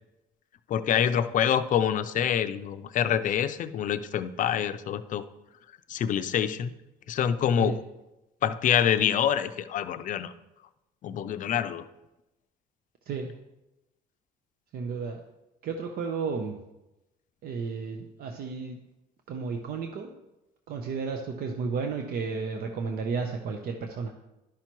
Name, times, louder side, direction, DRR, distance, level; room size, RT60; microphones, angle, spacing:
voice 1, 0.7-5.2 5.9-6.7 7.1-7.8 8.4-10.3 11.0-11.9, left 9 dB, 50° left, 11 dB, 0.5 m, -26 dB
voice 2, 14.7-15.2 15.6-16.6 17.4-18.8 19.3-20.1 20.7-24.1, right 5 dB, 65° right, 4 dB, 0.7 m, -32 dB
11.5 x 5.7 x 3.0 m, 0.96 s
cardioid pair, 110°, 17 cm